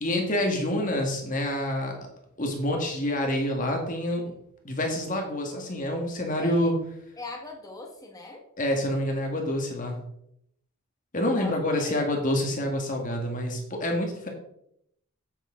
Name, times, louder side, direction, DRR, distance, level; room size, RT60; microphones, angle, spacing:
voice 1, 0.0-2.0 2.4-4.3 4.6-6.7 8.6-10.0 11.1-14.3, left 1 dB, 35° left, 2 dB, 1.8 m, -27 dB
voice 2, 6.4-6.7 7.2-8.4 11.3-12.1, left 2 dB, 15° left, 2 dB, 1.6 m, -40 dB
8.4 x 8.3 x 3.8 m, 0.74 s
head